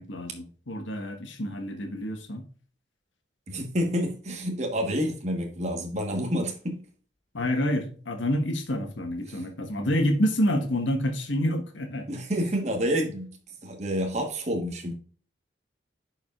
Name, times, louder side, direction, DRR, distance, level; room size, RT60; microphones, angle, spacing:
voice 1, 0.0-2.4 7.3-12.1, equal, 90° left, 1.4 m, -28 dB
voice 2, 3.5-6.8 9.3-9.4 12.1-13.4 13.6-14.9, equal, 35° right, 1.4 m, -28 dB
11.0 x 4.8 x 2.4 m
head